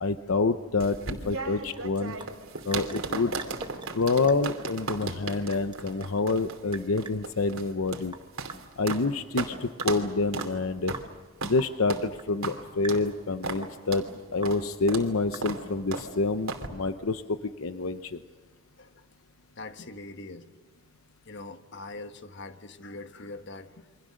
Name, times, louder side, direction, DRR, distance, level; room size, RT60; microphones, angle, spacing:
voice 1, 0.0-2.2 2.6-3.3 3.9-8.1 8.8-11.0 11.4-14.0 14.3-18.2, left 3 dB, 80° left, 10 dB, 0.8 m, -27 dB
sound 1, 0.8-9.1 9.4-9.5 9.8-10.1 10.3-10.5 10.9-11.0 11.4-11.6 11.9-12.1 12.4-12.6 12.9-13.1 13.4-13.6 13.9-14.1 14.5-14.6 14.9-15.1 15.4-15.6 15.9-16.1 16.5-16.7, right 3 dB, 80° right, 2.8 m, -35 dB
Sink (filling or washing) / Drip, 1.4-15.9, right 4 dB, 20° right, 1.3 m, -46 dB
voice 2, 19.6-20.6 21.2-23.9, left 2 dB, 55° left, 8 dB, 1.3 m, -42 dB
28.5 x 24.5 x 6.5 m, 1.4 s
head